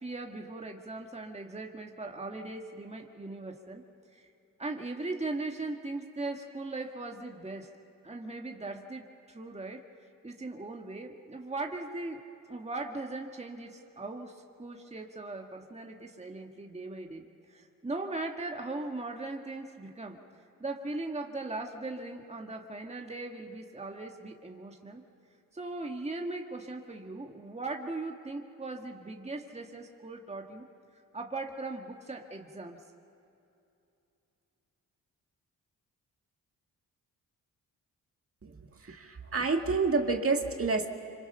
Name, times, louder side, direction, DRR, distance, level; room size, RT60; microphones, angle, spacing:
voice 1, 0.0-3.8 4.1-4.3 4.6-7.7 8.0-9.8 10.2-20.2 20.6-25.0 25.5-30.7 31.1-32.8, right 2 dB, 20° right, 2 dB, 1.9 m, -39 dB
voice 2, 38.4-40.9, right 4 dB, 40° right, 4 dB, 2.1 m, -29 dB
26.0 x 26.0 x 5.7 m, 2.8 s
cardioid pair, 65°, 36 cm